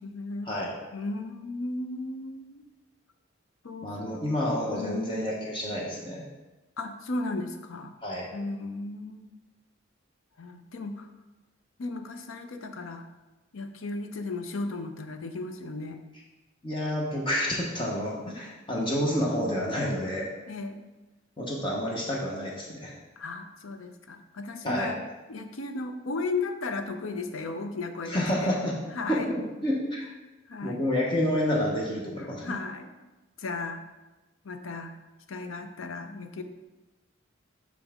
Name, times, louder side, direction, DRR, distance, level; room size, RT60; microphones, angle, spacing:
voice 1, 0.0-0.5 0.9-2.6 3.6-4.2 4.6-5.2 6.8-7.9 8.3-9.4 10.4-11.1 11.8-13.1 13.5-16.0 20.5-20.8 23.2-25.0 25.3-28.6 28.9-29.3 30.5-30.8 32.2-32.9 33.4-33.8 34.4-35.0 35.3-36.4, left 3 dB, 90° left, 7 dB, 0.6 m, -35 dB
voice 2, 3.8-6.2 8.0-8.3 16.6-20.3 21.4-22.9 24.6-24.9 28.1-28.8 29.1-29.2 29.6-30.0 30.6-32.6, equal, 25° left, -3 dB, 0.9 m, -29 dB
6.2 x 5.4 x 3.5 m, 1.1 s
head